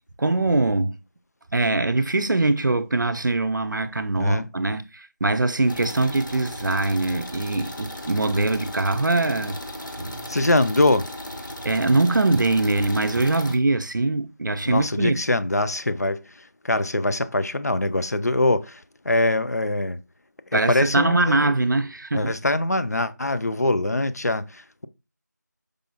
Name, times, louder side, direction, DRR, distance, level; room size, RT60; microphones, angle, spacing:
voice 1, 0.2-1.0 1.5-9.6 10.0-10.3 11.6-15.2 20.5-22.3, right 2 dB, 85° right, 0.4 m, -22 dB
voice 2, 4.2-4.5 10.3-11.1 14.7-20.0 20.5-21.5 22.1-24.9, left 2 dB, 55° left, 0.4 m, -23 dB
sound 1, 5.7-13.6, left 1 dB, 85° left, 0.9 m, -36 dB
4.8 x 2.1 x 2.5 m
figure-of-eight pair, 180°, 10 cm